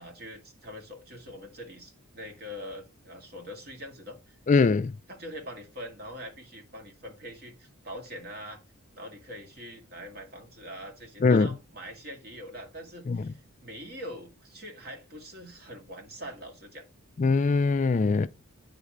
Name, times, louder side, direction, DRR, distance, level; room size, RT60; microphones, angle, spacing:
voice 1, 0.0-4.4 5.1-8.6 8.9-16.9, equal, 45° right, 2.2 m, -43 dB
voice 2, 4.5-4.9 11.2-11.5 13.1-13.3 17.2-18.3, left 4 dB, 35° left, 0.3 m, -22 dB
9.7 x 4.0 x 5.0 m
head